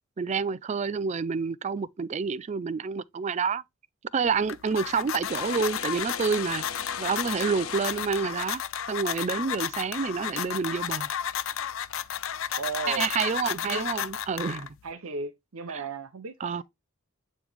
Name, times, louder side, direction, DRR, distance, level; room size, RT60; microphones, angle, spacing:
voice 1, 0.2-3.6 4.1-6.6 7.0-8.6 8.9-11.1 12.9-14.7 15.7-15.9 16.4-16.6, right 5 dB, 35° right, 0.4 m, -28 dB
sound 1, 4.3-14.9, left 9 dB, 65° left, 0.5 m, -33 dB
sound 2, 5.2-8.9, left 7 dB, 85° left, 1.0 m, -38 dB
voice 2, 12.5-13.1 13.7-13.9 14.8-16.6, right 4 dB, 85° right, 0.6 m, -36 dB
9.0 x 3.1 x 3.4 m
head